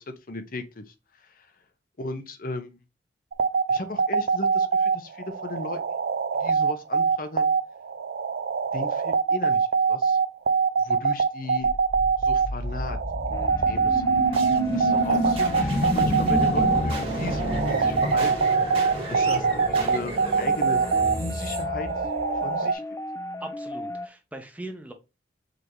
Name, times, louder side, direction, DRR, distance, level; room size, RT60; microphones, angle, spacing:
voice 1, 0.1-1.5 2.0-2.8 3.7-5.8 6.4-7.5 8.7-10.2 10.8-11.7 12.2-13.0 13.3-13.4 13.7-14.1 14.7-18.5 19.1-20.8 21.1-21.9 22.4-22.8, left 2 dB, 50° left, 0.7 m, -36 dB
sound 1, 3.3-22.7, right 5 dB, 60° right, 0.4 m, -23 dB
sound 2, 11.6-22.7, right 1 dB, 30° right, 1.5 m, -30 dB
sound 3, 13.3-24.1, left 3 dB, 15° left, 0.4 m, -35 dB
voice 2, 23.4-24.9, right 1 dB, 10° right, 0.7 m, -40 dB
5.0 x 3.5 x 3.0 m
head